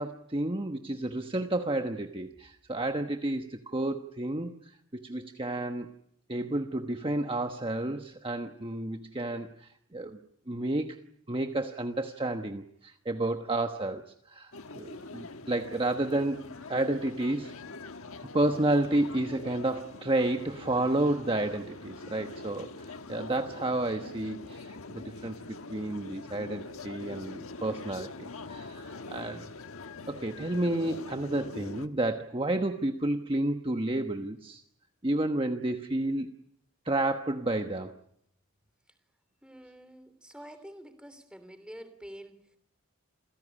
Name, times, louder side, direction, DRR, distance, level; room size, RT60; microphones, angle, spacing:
voice 1, 0.0-5.9 6.3-10.2 10.5-11.0 11.3-17.5 18.3-29.5 30.1-34.6 35.0-36.3 36.8-38.0, right 1 dB, 25° right, 5 dB, 1.2 m, -31 dB
sound 1, 14.5-31.9, left 3 dB, 70° left, 1.3 m, -44 dB
voice 2, 39.4-42.6, equal, 5° right, 11 dB, 3.0 m, -47 dB
28.0 x 16.5 x 10.0 m, 0.73 s
head